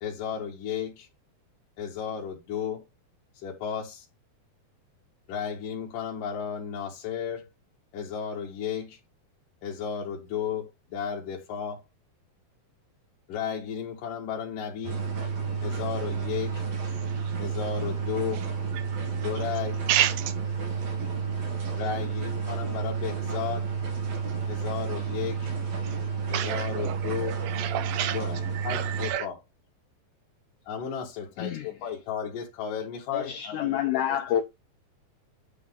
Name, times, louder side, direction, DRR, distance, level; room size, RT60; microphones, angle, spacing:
voice 1, 0.0-1.1 1.8-2.8 3.4-4.1 5.3-7.5 7.9-9.0 9.6-11.8 13.3-15.0 15.6-16.6 17.4-18.4 19.1-19.8 21.8-23.7 24.5-25.5 26.3-27.4 28.1-29.4 30.7-34.4, left 8 dB, 65° left, 3.0 m, -34 dB
sound 1, 14.8-29.1, right 5 dB, 55° right, 2.1 m, -31 dB
voice 2, 16.9-17.4 18.3-18.5 18.7-19.3 19.9-20.3 25.8-26.0 26.3-29.3, right 11 dB, 80° right, 2.6 m, -31 dB
voice 3, 33.1-34.4, left 10 dB, 90° left, 1.7 m, -28 dB
9.4 x 3.6 x 3.7 m
omnidirectional pair, 4.4 m